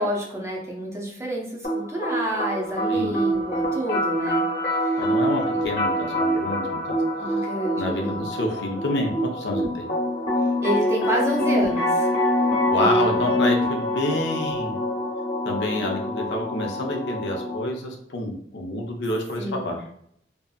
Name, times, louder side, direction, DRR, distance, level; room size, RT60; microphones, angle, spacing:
voice 1, 0.0-4.4 4.8-5.0 7.3-8.2 10.6-12.1 12.8-13.3 19.4-19.7, right 1 dB, 15° right, -1 dB, 0.5 m, -29 dB
sound 1, 1.6-17.6, equal, 50° left, 1.0 m, -25 dB
voice 2, 5.0-7.0 7.4-7.5 7.8-9.9 12.7-14.8 15.4-19.8, left 1 dB, 80° left, 2 dB, 0.5 m, -28 dB
2.6 x 2.5 x 2.3 m, 0.68 s
head